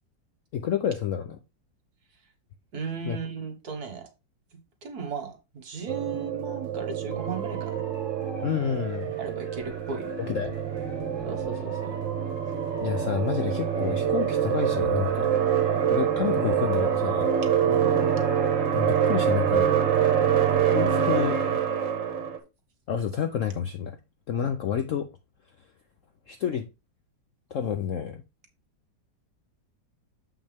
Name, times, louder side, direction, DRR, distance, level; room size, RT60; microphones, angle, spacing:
voice 1, 0.5-1.4 3.0-3.2 8.4-9.1 10.2-10.6 12.8-15.3 15.9-17.3 18.7-19.8 20.7-21.4 22.9-24.0 24.3-25.1 26.3-26.7 27.5-28.2, left 8 dB, 65° left, 0.8 m, -29 dB
voice 2, 2.7-4.0 4.8-7.8 9.2-10.1 11.2-12.0 17.6-18.1, right 5 dB, 55° right, 1.9 m, -36 dB
sound 1, 5.9-22.4, right 8 dB, 75° right, 2.0 m, -25 dB
Motor vehicle (road) / Siren, 7.1-20.9, right 2 dB, 15° right, 1.4 m, -46 dB
7.2 x 5.8 x 3.4 m
omnidirectional pair, 2.0 m